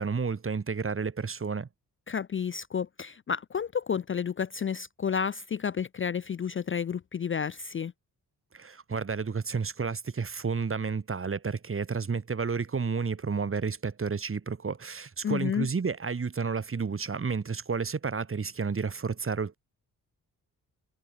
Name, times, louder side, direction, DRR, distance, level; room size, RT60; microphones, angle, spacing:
voice 1, 0.0-1.7 8.5-19.6, right 5 dB, 35° right, 1.4 m, -31 dB
voice 2, 2.1-7.9 15.2-15.7, left 7 dB, 35° left, 0.4 m, -31 dB
cardioid pair, 75°, 38 cm